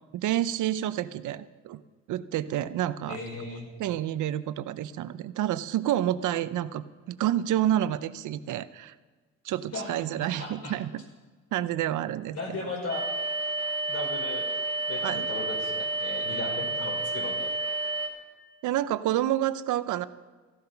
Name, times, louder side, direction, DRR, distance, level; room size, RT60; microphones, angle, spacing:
voice 1, 0.1-1.8 2.1-3.2 3.8-8.9 9.4-11.0 11.5-12.4 15.0-15.3 18.6-20.1, right 12 dB, 80° right, 14 dB, 0.7 m, -29 dB
voice 2, 3.1-3.7 9.7-10.7 12.3-13.1 13.9-14.5 14.9-17.5, left 3 dB, 55° left, 1 dB, 5.0 m, -37 dB
sound 1, 12.9-18.1, right 2 dB, 10° left, 3.2 m, -30 dB
15.0 x 11.5 x 5.8 m, 1.4 s
cardioid pair, 90°, 30 cm